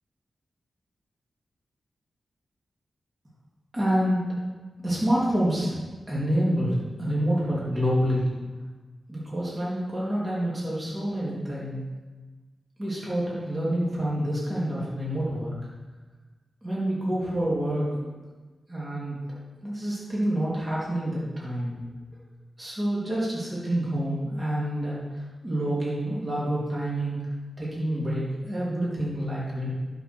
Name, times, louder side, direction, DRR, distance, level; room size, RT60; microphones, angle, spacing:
voice 1, 3.7-4.2 4.8-5.8 6.1-8.2 9.1-11.8 12.8-15.5 16.6-18.1 18.7-21.8 22.6-25.0 25.4-27.2 27.6-29.7, right 1 dB, 25° right, -7 dB, 3.2 m, -27 dB
10.5 x 5.1 x 6.3 m, 1.3 s
wide cardioid pair, 105°, 0 cm